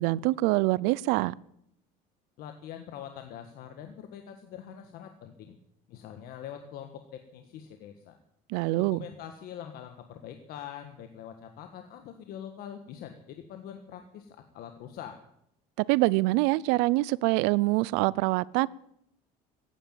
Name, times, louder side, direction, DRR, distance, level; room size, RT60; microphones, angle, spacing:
voice 1, 0.0-1.3 8.5-9.0 15.9-18.7, right 20 dB, 90° right, 0.5 m, -25 dB
voice 2, 2.4-5.6 5.9-8.2 8.9-15.2, left 9 dB, 65° left, 1.5 m, -44 dB
15.0 x 10.0 x 9.1 m
cardioid pair, 140°, 17 cm